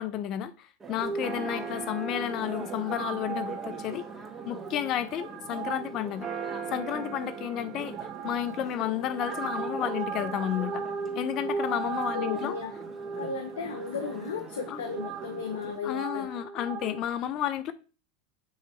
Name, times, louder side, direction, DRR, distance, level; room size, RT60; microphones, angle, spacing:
voice 1, 0.0-4.1 4.5-6.3 6.7-10.8 11.2-12.6 14.7-14.8 15.8-17.7, left 11 dB, 45° left, 0.7 m, -32 dB
Church bell, 0.8-15.8, right 5 dB, 25° right, 1.5 m, -41 dB
sound 1, 1.0-17.0, right 5 dB, 40° right, 1.2 m, -38 dB
voice 2, 11.8-12.7 13.2-16.3, left 5 dB, 85° left, 0.8 m, -35 dB
7.2 x 3.0 x 4.3 m
hypercardioid pair, 100°, 0 cm